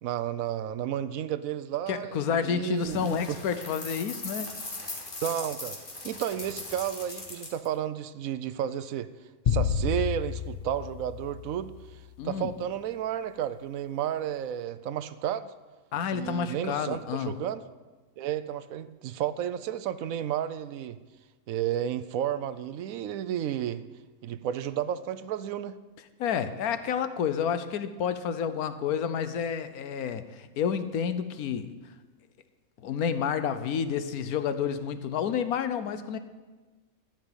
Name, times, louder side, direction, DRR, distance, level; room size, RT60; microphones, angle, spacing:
voice 1, 0.0-3.4 5.2-5.8 6.0-9.1 9.5-11.7 12.2-15.5 16.1-17.6 18.2-21.0 21.5-23.8 24.2-25.8, right 10 dB, 75° right, 14 dB, 1.0 m, -32 dB
voice 2, 1.9-4.7 12.2-12.5 15.9-17.4 26.2-31.7 32.8-36.2, left 7 dB, 85° left, 11 dB, 1.3 m, -30 dB
sound 1, 2.8-7.7, left 2 dB, 35° left, 2.0 m, -39 dB
sound 2, 9.5-11.9, left 6 dB, 65° left, 0.4 m, -30 dB
13.5 x 5.3 x 9.0 m, 1.3 s
omnidirectional pair, 1.5 m